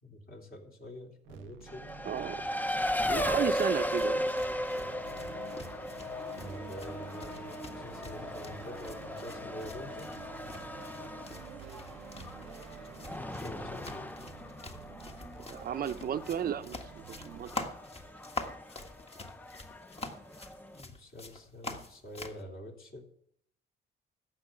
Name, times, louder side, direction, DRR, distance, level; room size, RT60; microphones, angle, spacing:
voice 1, 0.0-1.9 6.4-10.1 13.3-13.9 20.7-23.0, equal, 50° left, 1 dB, 3.4 m, -46 dB
sound 1, 1.2-17.7, right 15 dB, 85° right, 0.4 m, -52 dB
Race car auto racing, 1.7-20.8, equal, 10° left, 0.6 m, -37 dB
voice 2, 2.0-2.4 3.1-4.2 15.5-17.5, right 9 dB, 50° right, 10 dB, 0.6 m, -34 dB
sound 2, 3.5-22.4, left 2 dB, 30° left, 1.6 m, -46 dB
14.0 x 5.8 x 9.1 m, 0.68 s
cardioid pair, 90°, 20 cm